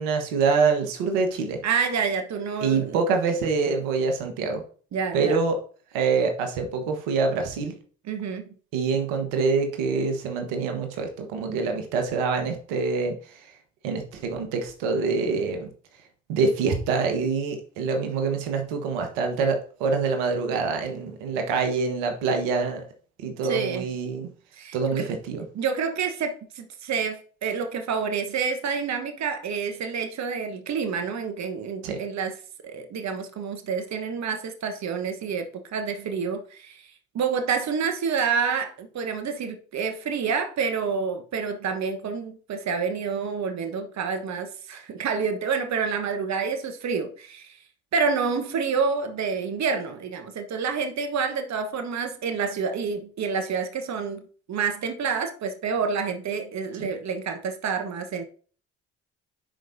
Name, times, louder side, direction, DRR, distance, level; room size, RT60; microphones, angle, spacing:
voice 1, 0.0-1.6 2.6-4.6 5.1-5.6 5.9-7.7 8.7-13.5 13.8-15.7 16.3-22.8 23.2-24.3 24.7-25.5 31.8-32.0 56.8-56.9, right 4 dB, 80° right, 1.3 m, -25 dB
voice 2, 1.6-3.0 4.9-5.4 8.1-8.4 23.5-23.8 24.5-25.1 25.5-32.3 32.6-35.5 35.7-36.8 37.1-47.6 47.9-54.2 54.5-58.2, right 5 dB, 50° right, 1.2 m, -28 dB
10.5 x 4.7 x 2.7 m
hypercardioid pair, 55°, 35 cm